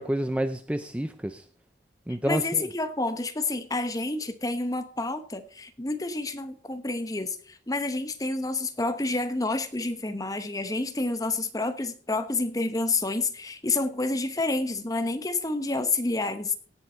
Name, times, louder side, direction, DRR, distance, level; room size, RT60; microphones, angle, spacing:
voice 1, 0.0-1.4 2.1-2.7, right 1 dB, 5° right, 10 dB, 0.4 m, -29 dB
voice 2, 2.2-16.5, left 2 dB, 20° left, 10 dB, 0.9 m, -29 dB
17.0 x 6.9 x 4.3 m, 0.43 s
head